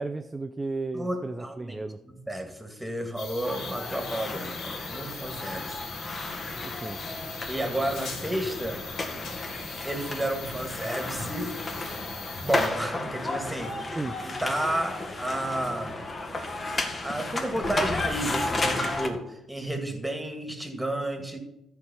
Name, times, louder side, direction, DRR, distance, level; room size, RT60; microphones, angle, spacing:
voice 1, 0.0-2.0 6.6-7.0 13.9-14.2, right 3 dB, 20° right, 8 dB, 0.6 m, -34 dB
voice 2, 0.9-5.8 7.5-8.9 9.8-11.5 12.4-13.8 14.2-15.9 17.0-21.4, right 1 dB, 5° right, 5 dB, 2.1 m, -32 dB
sound 1, 3.2-12.7, left 4 dB, 70° left, 2.7 m, -40 dB
sound 2, 3.4-19.1, left 2 dB, 35° left, 1.9 m, -33 dB
13.5 x 4.7 x 7.1 m, 0.88 s
cardioid pair, 90°, 0 cm